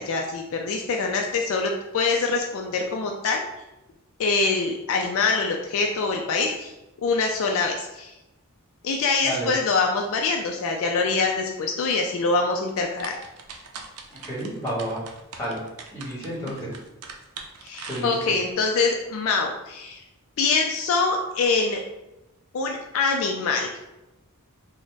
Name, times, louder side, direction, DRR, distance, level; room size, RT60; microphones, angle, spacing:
voice 1, 0.0-3.4 4.2-6.7 7.0-8.1 8.8-13.1 16.4-16.6 17.6-20.0 20.4-21.8 22.5-23.7, left 4 dB, 65° left, 2 dB, 0.3 m, -24 dB
sound 1, 12.7-18.5, right 5 dB, 85° right, 0.5 m, -41 dB
voice 2, 14.1-15.0 15.3-15.6 15.9-16.7 17.9-18.4, right 1 dB, 15° left, -7 dB, 1.3 m, -31 dB
3.9 x 2.1 x 3.4 m, 0.97 s
head